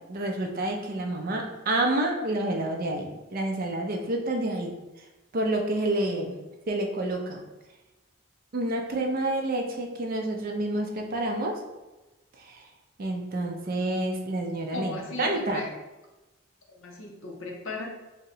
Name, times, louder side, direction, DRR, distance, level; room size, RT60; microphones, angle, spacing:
voice 1, 0.1-4.7 5.3-6.4 6.7-7.4 8.5-11.6 12.4-12.6 13.0-15.6, right 1 dB, 45° right, 2 dB, 0.5 m, -28 dB
voice 2, 14.7-15.7 16.7-17.9, left 2 dB, 70° left, 0 dB, 0.6 m, -36 dB
2.7 x 2.1 x 3.8 m, 1.1 s
head